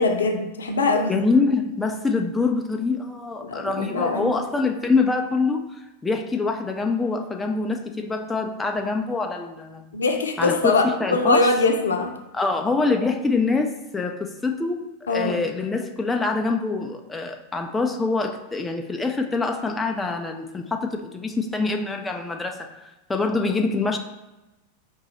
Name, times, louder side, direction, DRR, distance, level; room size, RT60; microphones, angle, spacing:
voice 1, 0.0-1.2 3.4-4.3 9.9-12.1 15.1-15.4, left 3 dB, 70° left, 3 dB, 0.6 m, -22 dB
voice 2, 1.1-9.9 10.4-11.5 12.3-24.0, left 3 dB, 10° left, 4 dB, 0.3 m, -25 dB
3.9 x 2.6 x 4.2 m, 1.0 s
figure-of-eight pair, 90°, 0 cm